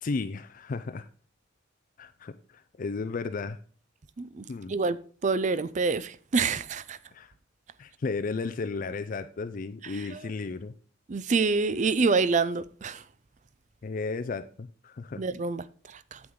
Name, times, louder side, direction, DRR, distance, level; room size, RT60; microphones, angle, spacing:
voice 1, 0.0-1.1 2.0-3.6 4.5-4.7 7.1-7.3 7.8-10.7 13.8-15.2, left 4 dB, 45° left, 0.4 m, -34 dB
voice 2, 5.2-7.0 9.8-10.2 11.1-13.0 15.2-16.2, right 4 dB, 40° right, 0.5 m, -27 dB
8.7 x 7.9 x 3.7 m
head